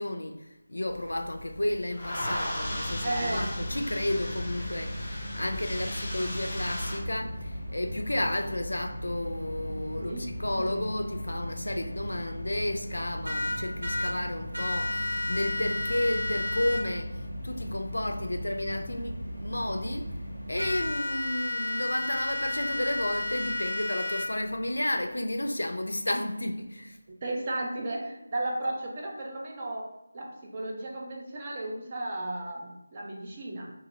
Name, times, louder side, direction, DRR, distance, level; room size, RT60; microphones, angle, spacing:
voice 1, 0.0-20.2 20.5-27.0, left 1 dB, 65° left, 0.3 m, -32 dB
sound 1, 0.9-7.0, left 1 dB, 15° left, 0.7 m, -36 dB
sound 2, 2.5-20.9, equal, 90° right, 1.1 m, -38 dB
voice 2, 3.0-3.5 9.9-10.3 10.6-10.8 27.1-29.9 30.1-33.7, right 1 dB, 25° right, 0.4 m, -34 dB
sound 3, 13.2-14.1 14.5-16.8 20.6-24.3, left 2 dB, 70° right, 0.7 m, -31 dB
2.9 x 2.4 x 2.9 m
figure-of-eight pair, 160°, 0 cm